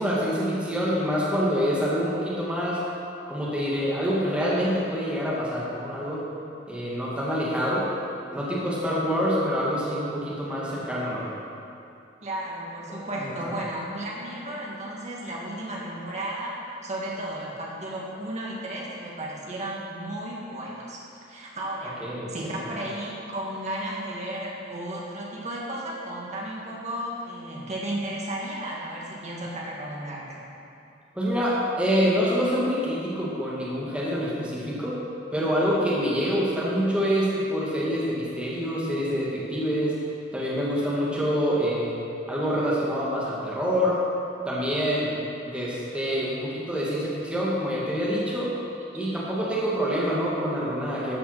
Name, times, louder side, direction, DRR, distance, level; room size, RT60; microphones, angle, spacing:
voice 1, 0.0-2.8 3.3-6.2 6.7-7.8 8.3-11.3 12.9-13.3 22.0-22.3 31.1-35.0 35.3-39.9 40.3-42.0 42.3-44.0 44.5-45.1 45.4-48.5 48.9-51.2, equal, 5° right, -7 dB, 1.9 m, -26 dB
voice 2, 12.2-22.0 22.3-30.4, right 1 dB, 40° right, -4 dB, 2.1 m, -34 dB
13.5 x 6.0 x 5.7 m, 2.6 s
head